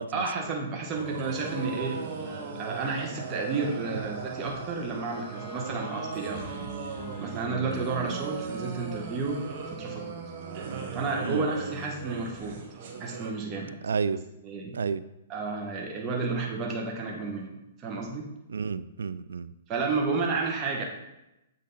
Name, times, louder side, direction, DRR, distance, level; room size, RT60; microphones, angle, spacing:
voice 1, 0.1-2.0 2.6-6.6 7.2-9.4 9.7-10.0 10.9-12.6 13.0-13.7 14.4-14.8 15.3-18.3 19.7-20.8, right 4 dB, 30° right, -1 dB, 1.2 m, -31 dB
sound 1, 0.9-13.3, right 5 dB, 50° right, 1.2 m, -38 dB
Bowed string instrument, 5.0-10.6, left 1 dB, ahead, 2.2 m, -49 dB
voice 2, 13.8-14.2 14.7-15.0 18.5-19.5, right 5 dB, 80° right, 15 dB, 0.3 m, -30 dB
7.5 x 3.7 x 4.0 m, 0.91 s
hypercardioid pair, 130°, 0 cm